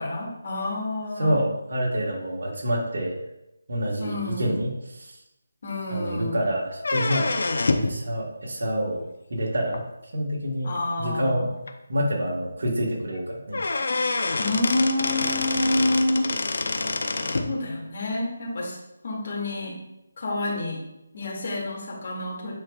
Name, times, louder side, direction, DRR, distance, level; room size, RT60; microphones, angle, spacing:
voice 1, 0.0-1.4 4.0-4.6 5.6-6.4 10.6-11.5 14.4-16.3 17.2-18.8 19.0-19.8 20.2-20.8 21.1-22.5, left 2 dB, 50° left, -3 dB, 2.3 m, -28 dB
voice 2, 1.2-3.2 3.7-5.2 5.9-7.4 7.8-9.0 9.3-9.8 10.1-13.6, equal, 65° right, -1 dB, 1.6 m, -27 dB
sound 1, 6.8-8.0 9.7-9.8 10.8-10.9 11.3-11.4 11.7-11.8 13.1-13.2 13.5-17.5, left 3 dB, 65° left, 0.6 m, -26 dB
8.7 x 4.7 x 2.4 m, 0.90 s
figure-of-eight pair, 160°, 0 cm